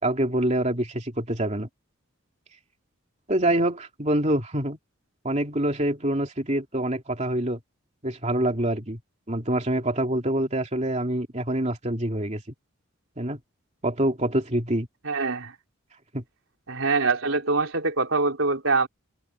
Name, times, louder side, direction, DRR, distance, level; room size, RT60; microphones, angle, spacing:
voice 1, 0.0-1.7 3.3-4.8 5.2-7.6 8.0-9.0 9.3-12.4 13.2-13.4 13.8-14.9 16.1-16.2, right 1 dB, 35° right, 2.9 m, -25 dB
voice 2, 15.0-15.5 16.7-18.9, right 3 dB, 70° right, 3.7 m, -24 dB
open air
head